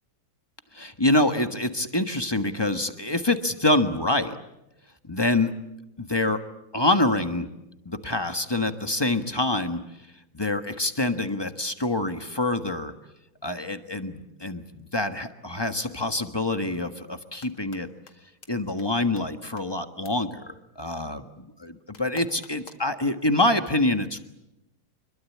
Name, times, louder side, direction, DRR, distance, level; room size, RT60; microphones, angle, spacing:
voice 1, 0.7-4.4 5.1-5.6 6.0-6.4 6.7-7.5 7.8-9.8 10.3-12.9 13.4-17.9 18.5-21.3 21.6-24.2, left 2 dB, 15° left, 8 dB, 1.2 m, -26 dB
sound 1, 17.2-17.8 18.1-18.2 18.4-18.5 18.8-18.9 19.2-19.3 19.6-19.7 20.0-20.1 21.9-22.9, left 6 dB, 90° left, 2.8 m, -47 dB
26.0 x 22.5 x 8.6 m, 0.89 s
omnidirectional pair, 2.2 m